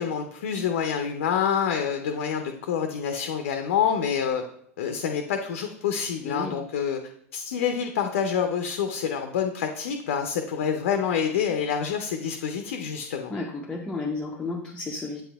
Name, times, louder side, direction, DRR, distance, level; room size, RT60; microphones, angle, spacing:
voice 1, 0.0-4.4 4.8-7.0 7.3-13.3, left 7 dB, 60° left, 5 dB, 0.6 m, -27 dB
voice 2, 6.2-6.6 13.3-15.2, left 3 dB, 10° left, 1 dB, 0.6 m, -32 dB
8.2 x 5.7 x 2.3 m, 0.68 s
figure-of-eight pair, 85°, 8 cm